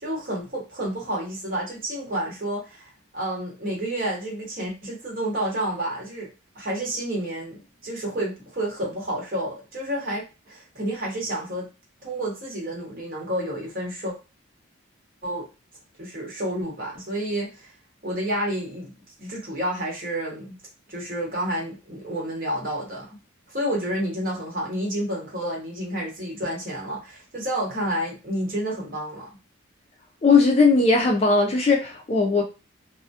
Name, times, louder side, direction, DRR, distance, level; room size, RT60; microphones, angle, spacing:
voice 1, 0.0-11.7 12.0-14.1 15.2-15.5 16.0-17.7 18.0-18.9 19.2-20.5 20.9-23.1 23.5-29.2, right 1 dB, 45° right, 0.9 m, -30 dB
voice 2, 30.2-32.4, left 4 dB, 30° left, 0.3 m, -18 dB
2.2 x 2.1 x 2.7 m
head